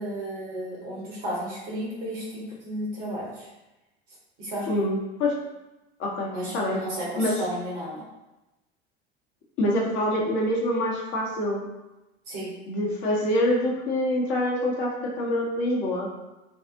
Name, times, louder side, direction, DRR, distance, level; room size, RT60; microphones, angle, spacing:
voice 1, 0.0-3.5 4.4-4.7 6.3-8.0 12.3-12.5, right 1 dB, 55° right, -5 dB, 1.4 m, -33 dB
voice 2, 4.7-5.3 6.0-6.8 7.2-7.4 9.6-11.6 12.7-16.1, left 1 dB, 40° left, -3 dB, 0.7 m, -25 dB
3.4 x 2.0 x 2.6 m, 1.0 s
figure-of-eight pair, 75°, 31 cm